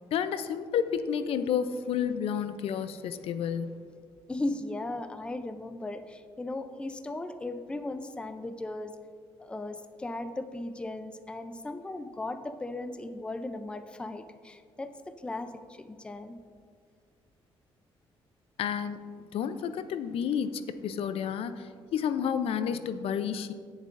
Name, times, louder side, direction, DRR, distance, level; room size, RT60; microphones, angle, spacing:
voice 1, 0.1-3.8 18.6-19.0 19.3-23.5, left 8 dB, 65° left, 11 dB, 0.5 m, -30 dB
voice 2, 2.4-3.5 4.3-9.0 9.4-16.4, left 2 dB, 10° left, 9 dB, 0.5 m, -37 dB
17.5 x 7.3 x 2.6 m, 2.1 s
cardioid pair, 130°, 10 cm